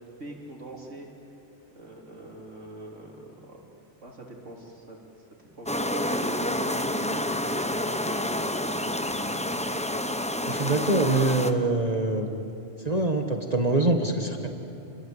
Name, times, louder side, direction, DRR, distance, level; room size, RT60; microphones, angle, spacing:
voice 1, 0.2-1.1 1.7-3.6 4.0-5.0 5.4-7.8 8.1-8.4, right 1 dB, 80° right, -1 dB, 3.9 m, -42 dB
sound 1, 5.7-11.5, left 1 dB, 5° left, 0.8 m, -28 dB
voice 2, 10.4-12.2 12.8-14.5, right 2 dB, 35° right, 4 dB, 1.6 m, -24 dB
29.5 x 22.0 x 8.3 m, 2.8 s
omnidirectional pair, 1.2 m